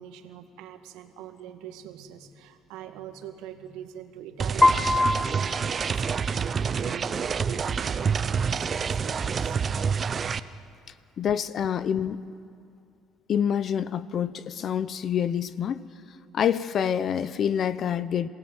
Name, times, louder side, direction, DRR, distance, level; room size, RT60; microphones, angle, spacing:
voice 1, 0.0-9.6, right 9 dB, 85° right, 1.8 m, -43 dB
sound 1, 4.4-10.4, right 6 dB, 35° right, 0.7 m, -27 dB
Piano, 4.6-6.7, left 2 dB, 15° left, 0.8 m, -24 dB
voice 2, 11.2-12.2 13.3-15.8 16.3-18.3, left 8 dB, 50° left, 0.8 m, -26 dB
27.0 x 17.0 x 9.0 m
cardioid pair, 105°, 0 cm